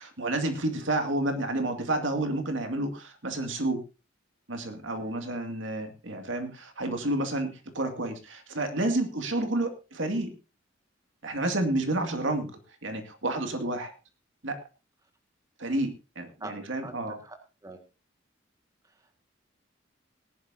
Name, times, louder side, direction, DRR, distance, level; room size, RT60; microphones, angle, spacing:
voice 1, 0.0-3.8 4.5-10.3 11.2-12.5 12.8-13.9 14.4-14.6 15.6-17.2, right 2 dB, 75° right, 5 dB, 2.3 m, -30 dB
voice 2, 16.8-17.4 17.6-17.8 18.8-19.2, right 2 dB, 20° right, 4 dB, 1.8 m, -44 dB
19.5 x 11.0 x 2.8 m, 0.30 s
head